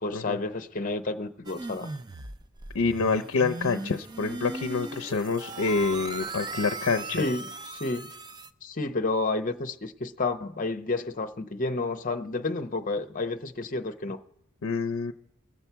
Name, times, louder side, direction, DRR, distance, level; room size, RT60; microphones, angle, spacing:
voice 1, 0.0-1.9 7.1-8.1 8.6-14.2, left 3 dB, 40° left, 0.7 m, -30 dB
sound 1, 1.5-8.5, right 3 dB, 20° right, 0.4 m, -38 dB
voice 2, 2.7-7.2 14.6-15.1, left 4 dB, 80° left, 0.6 m, -27 dB
20.5 x 7.1 x 4.5 m
head